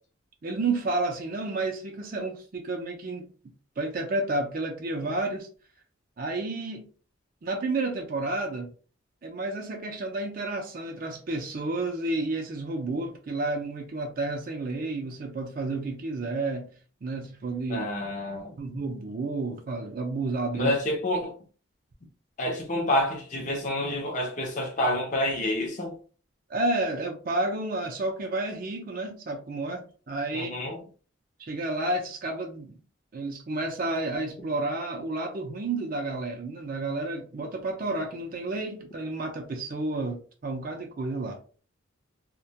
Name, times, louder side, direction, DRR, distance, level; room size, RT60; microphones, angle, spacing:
voice 1, 0.4-3.3 3.8-5.5 6.2-6.9 7.4-8.7 9.2-16.7 17.0-17.9 18.6-20.7 26.5-30.5 31.4-32.7 33.1-41.4, right 2 dB, 45° right, 0.4 m, -31 dB
voice 2, 17.7-18.6 20.5-21.3 22.4-26.0 30.3-30.8, left 1 dB, 40° left, 0.5 m, -28 dB
2.2 x 2.1 x 2.7 m
head